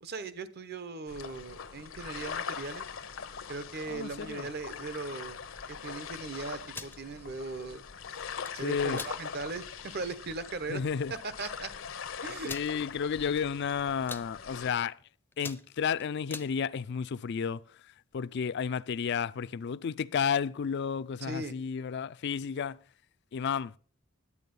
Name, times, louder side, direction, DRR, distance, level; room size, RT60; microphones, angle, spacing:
voice 1, 0.0-2.8 3.5-5.4 5.7-7.8 8.5-10.8 11.2-11.7 12.2-12.5 21.2-21.5, right 3 dB, 55° right, 0.9 m, -39 dB
sound 1, 1.1-14.7, left 6 dB, 75° left, 0.8 m, -42 dB
voice 2, 3.9-4.5 8.6-9.0 10.7-11.1 12.5-15.0 15.4-17.6 18.1-22.8 23.3-23.7, left 6 dB, 60° left, 0.4 m, -32 dB
sound 2, 6.6-7.0 8.2-8.5 8.9-9.2 9.7-9.8 10.1-10.3 11.1-11.2 11.4-11.5 12.4-12.7 13.3-13.6 13.9-14.3 14.8-15.0 15.3-16.5, left 3 dB, 10° left, 0.5 m, -42 dB
11.0 x 8.8 x 5.3 m
head